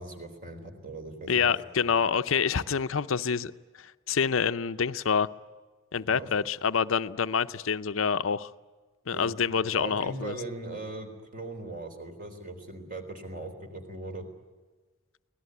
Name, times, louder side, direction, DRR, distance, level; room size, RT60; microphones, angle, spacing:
voice 1, 0.0-1.5 1.8-2.0 6.1-6.3 9.1-14.3, right 2 dB, 45° right, 6 dB, 3.7 m, -40 dB
voice 2, 1.3-3.5 3.8-5.3 5.9-8.5 9.1-10.3, left 6 dB, 75° left, 12 dB, 0.6 m, -27 dB
24.5 x 18.0 x 9.5 m, 1.4 s
head